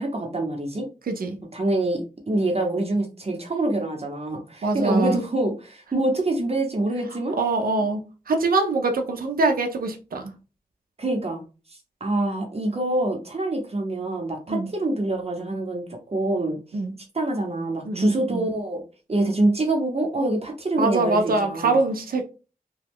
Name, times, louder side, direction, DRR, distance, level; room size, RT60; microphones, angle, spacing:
voice 1, 0.0-0.9 1.5-7.4 11.0-11.4 12.0-16.6 17.1-18.8 19.1-21.8, right 2 dB, 45° right, 0.8 m, -25 dB
voice 2, 1.1-1.4 4.6-5.2 7.4-10.3 14.5-14.7 16.7-17.0 17.9-18.5 20.8-22.2, right 3 dB, 75° right, 0.5 m, -24 dB
3.0 x 2.2 x 3.5 m
wide cardioid pair, 85°, 15 cm